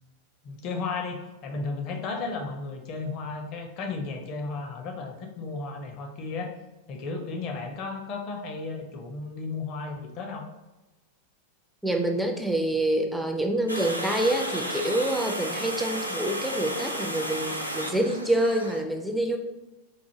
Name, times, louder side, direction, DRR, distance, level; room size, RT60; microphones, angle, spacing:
voice 1, 0.4-6.5 6.9-10.4, left 4 dB, 40° left, 3 dB, 0.7 m, -34 dB
voice 2, 11.8-19.4, right 1 dB, ahead, 3 dB, 0.5 m, -26 dB
Water, 13.7-18.8, equal, 90° right, 0.4 m, -33 dB
4.8 x 2.5 x 2.8 m, 1.1 s
figure-of-eight pair, 90°, 0 cm